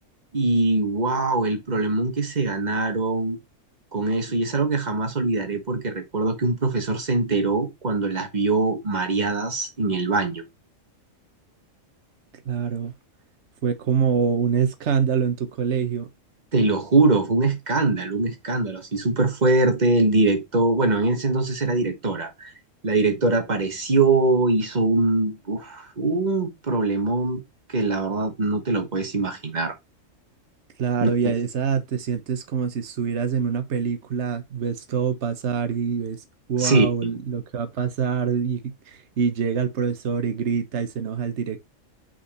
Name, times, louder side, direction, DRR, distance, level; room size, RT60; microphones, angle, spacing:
voice 1, 0.3-3.4 3.9-10.4 16.5-22.5 22.8-27.4 27.7-29.7 31.0-31.3 36.6-37.2, right 3 dB, 35° right, 1.5 m, -22 dB
voice 2, 12.4-12.9 13.6-16.1 30.8-36.2 36.5-41.6, right 6 dB, 60° right, 1.3 m, -25 dB
5.5 x 4.4 x 4.2 m
omnidirectional pair, 1.4 m